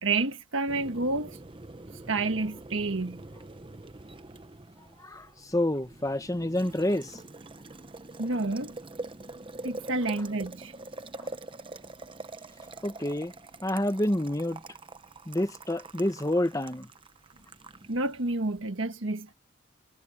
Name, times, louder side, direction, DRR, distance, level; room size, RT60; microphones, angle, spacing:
voice 1, 0.0-1.4 2.1-3.2 8.2-8.7 9.6-10.7 17.9-19.3, right 3 dB, 70° right, 1.5 m, -29 dB
Boiling, 0.7-18.6, right 2 dB, 25° right, 0.8 m, -45 dB
voice 2, 5.0-7.2 11.2-11.3 12.8-13.3 13.6-14.6 15.3-16.9, left 1 dB, 15° left, 1.3 m, -28 dB
head